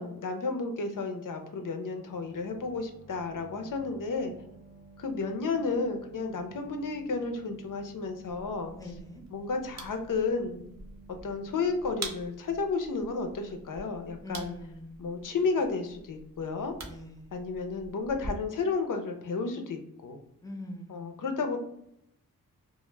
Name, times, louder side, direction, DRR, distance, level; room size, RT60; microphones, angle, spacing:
voice 1, 0.0-4.3 5.0-8.7 9.3-10.6 11.2-14.5 15.0-16.7 17.3-20.2 20.9-21.6, left 4 dB, 60° left, 6 dB, 0.5 m, -32 dB
sound 1, 2.0-13.4, right 3 dB, 75° right, 0.9 m, -54 dB
sound 2, 8.3-18.3, right 2 dB, 45° right, 0.6 m, -46 dB
voice 2, 8.7-9.2 14.2-15.4 16.8-17.4 20.4-21.2, left 1 dB, 10° left, 2 dB, 0.5 m, -44 dB
2.1 x 2.0 x 3.1 m, 0.78 s
cardioid pair, 50°, 36 cm